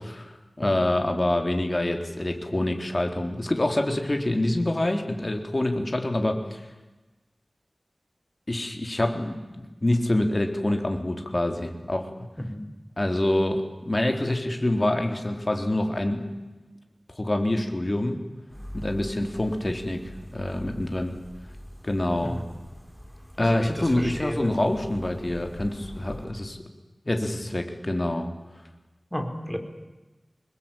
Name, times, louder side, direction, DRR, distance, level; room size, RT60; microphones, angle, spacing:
voice 1, 0.0-6.6 8.5-12.1 13.0-16.3 17.2-18.2 18.7-20.0 20.3-21.2 21.8-22.4 23.4-26.6 27.1-28.3, left 1 dB, 35° left, 5 dB, 3.8 m, -26 dB
voice 2, 23.4-24.6 25.3-25.4 29.1-29.6, equal, 5° left, 5 dB, 4.4 m, -33 dB
26.0 x 21.0 x 9.1 m, 1.1 s
wide cardioid pair, 60°, 0 cm